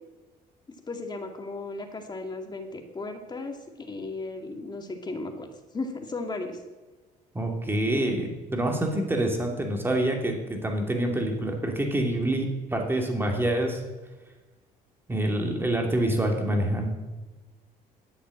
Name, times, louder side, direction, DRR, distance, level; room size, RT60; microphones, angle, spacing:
voice 1, 0.9-5.5 5.7-6.6, left 3 dB, 25° left, 4 dB, 2.2 m, -35 dB
voice 2, 7.3-13.8 15.1-16.9, right 1 dB, 15° right, 2 dB, 2.7 m, -26 dB
10.5 x 8.2 x 8.9 m, 1.2 s
cardioid pair, 110°, 17 cm